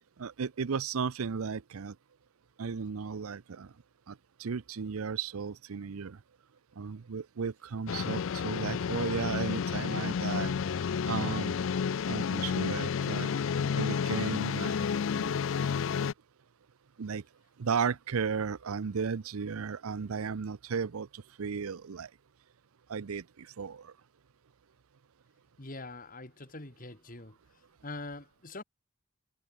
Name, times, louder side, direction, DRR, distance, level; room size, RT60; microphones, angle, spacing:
voice 1, 0.2-1.9 2.6-3.7 4.1-4.2 4.4-6.2 6.8-10.5 11.1-11.5 12.1-13.3 13.7-14.7 15.2-15.4 17.0-17.2 17.6-22.1 22.9-23.9, right 6 dB, 90° right, 0.6 m, -34 dB
sound 1, 7.9-16.1, left 6 dB, 65° left, 0.4 m, -31 dB
voice 2, 25.6-27.4 27.8-28.6, left 2 dB, 40° left, 3.0 m, -43 dB
head